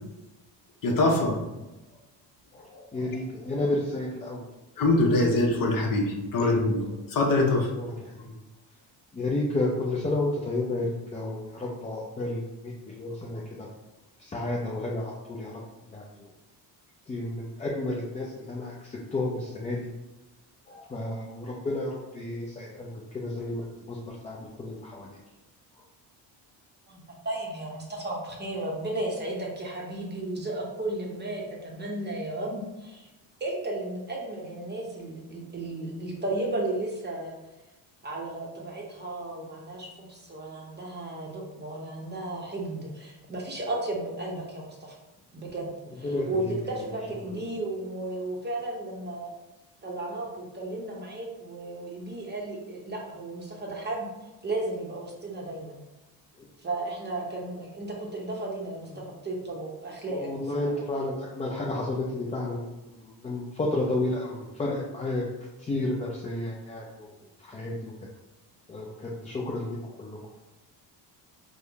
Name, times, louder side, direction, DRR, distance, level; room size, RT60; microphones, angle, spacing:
voice 1, 0.8-1.4 4.8-7.7, left 2 dB, 50° left, 0 dB, 0.8 m, -23 dB
voice 2, 2.5-4.5 6.4-6.6 7.7-8.4 9.1-13.7 14.2-15.6 15.9-16.3 17.1-19.9 20.7-25.2 25.7-25.8 46.0-46.9 47.2-47.4 56.4-56.5 58.9-59.0 60.1-65.2 65.6-67.1 67.4-67.9 68.7-70.2, left 2 dB, 15° left, -4 dB, 0.4 m, -32 dB
voice 3, 26.9-33.1 33.4-37.4 38.0-45.0 45.3-49.3 49.8-54.1 54.4-55.8 56.6-60.7, right 2 dB, 25° right, -2 dB, 0.7 m, -34 dB
3.6 x 2.1 x 3.3 m, 1.0 s
cardioid pair, 100°, 44 cm